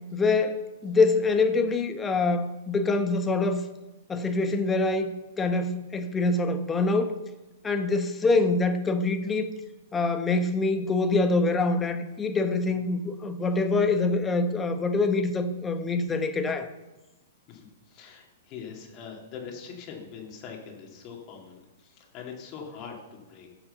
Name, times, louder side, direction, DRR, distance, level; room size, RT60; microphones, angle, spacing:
voice 1, 0.1-3.6 4.1-5.1 5.4-7.1 7.6-9.5 9.9-16.7, left 3 dB, 15° left, 7 dB, 1.1 m, -25 dB
voice 2, 17.5-23.5, left 6 dB, 40° left, 0 dB, 2.5 m, -43 dB
10.5 x 5.8 x 7.0 m, 1.0 s
hypercardioid pair, 120°, 0 cm